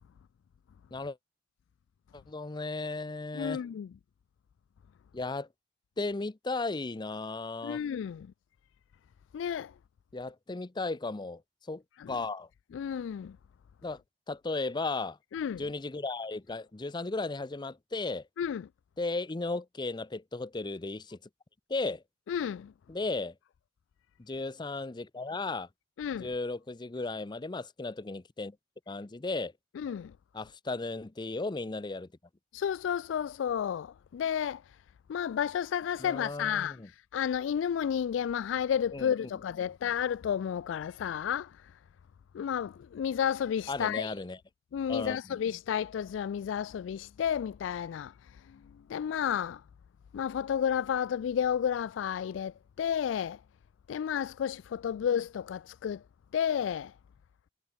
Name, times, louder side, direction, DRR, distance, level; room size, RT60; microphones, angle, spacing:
voice 1, 2.1-3.6 5.1-5.5 6.0-7.8 10.1-11.4 11.7-11.8 12.1-12.5 13.8-14.0 14.3-15.2 15.6-18.2 19.0-21.2 21.7-22.0 22.9-23.3 24.2-25.7 26.1-28.6 28.9-29.5 30.3-32.1 36.0-36.9 38.9-39.3 43.7-44.4 44.9-45.2, left 3 dB, 25° left, 0.6 m, -35 dB
voice 2, 3.3-3.9 7.6-8.3 9.3-9.7 12.0-12.2 12.7-13.4 15.3-15.6 18.4-18.7 22.3-22.7 26.0-26.3 29.8-30.1 32.5-34.8 35.1-41.7 42.3-44.1 44.7-48.6 48.9-49.6 50.1-53.4 53.9-56.0 56.3-56.9, left 8 dB, 80° left, 0.3 m, -32 dB
head